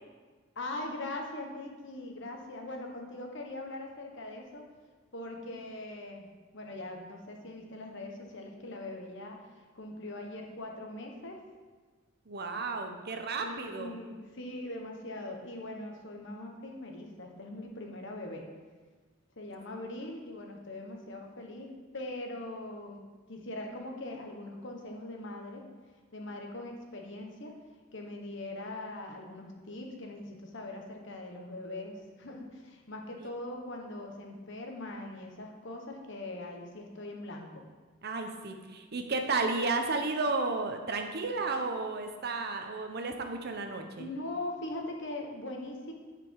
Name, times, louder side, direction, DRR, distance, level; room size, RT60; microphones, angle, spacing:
voice 1, 0.5-4.6 5.1-6.3 6.5-11.4 13.4-18.4 19.4-23.0 23.3-25.6 26.1-27.5 27.9-37.6 44.0-45.9, left 2 dB, 65° left, 2 dB, 1.3 m, -41 dB
voice 2, 12.3-13.9 33.2-33.3 38.0-44.1, right 3 dB, 50° right, 5 dB, 0.9 m, -33 dB
10.5 x 5.1 x 4.8 m, 1.4 s
head